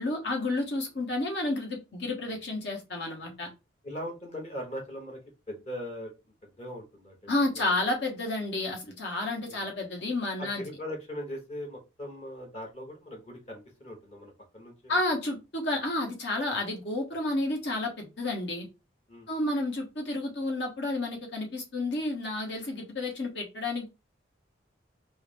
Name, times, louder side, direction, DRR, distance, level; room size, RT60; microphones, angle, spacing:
voice 1, 0.0-3.5 7.3-10.7 14.9-18.7 19.3-23.9, left 2 dB, 65° left, 2 dB, 1.2 m, -31 dB
voice 2, 3.8-5.2 5.5-6.1 6.4-7.5 9.5-9.6 10.4-15.0 19.1-19.3, equal, 35° left, 0 dB, 1.2 m, -40 dB
4.6 x 2.1 x 3.3 m, 0.27 s
head